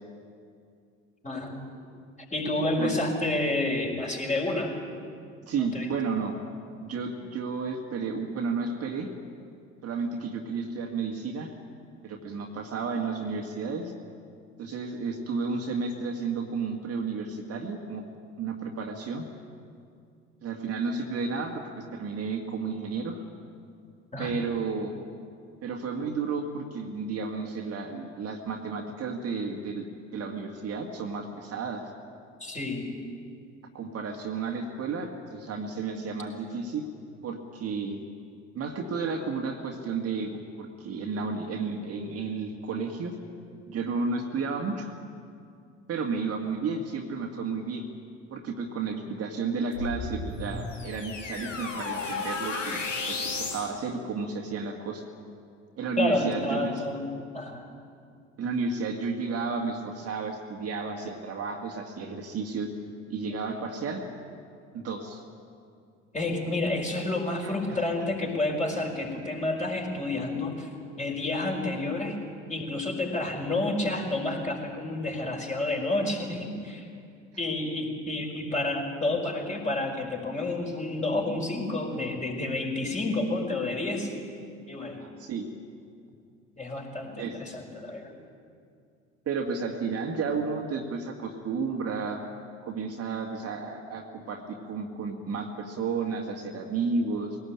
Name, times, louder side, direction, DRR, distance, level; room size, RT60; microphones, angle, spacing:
voice 1, 1.2-1.6 2.3-4.7 5.6-5.9 24.1-24.3 32.4-32.9 56.0-57.6 65.0-65.1 66.1-70.7 71.0-72.2 72.5-76.9 77.4-84.1 84.7-85.0 86.6-88.1, left 2 dB, 20° left, 0 dB, 4.9 m, -30 dB
voice 2, 5.5-6.4 6.8-9.1 9.8-11.5 12.0-13.9 14.6-18.0 18.4-19.3 20.4-23.2 24.2-24.9 25.6-29.9 30.1-31.9 33.7-36.8 37.2-38.0 38.5-43.1 43.7-44.9 45.9-47.9 48.3-52.8 53.1-55.1 55.8-56.8 58.4-62.7 63.1-64.1 64.7-65.2 67.4-67.8 85.0-85.5 87.2-87.4 89.3-92.2 92.6-97.4, right 4 dB, 40° right, 2 dB, 2.1 m, -32 dB
sound 1, 49.7-53.7, left 3 dB, 80° left, 2.1 m, -33 dB
21.5 x 18.0 x 8.9 m, 2.4 s
figure-of-eight pair, 60°, 36 cm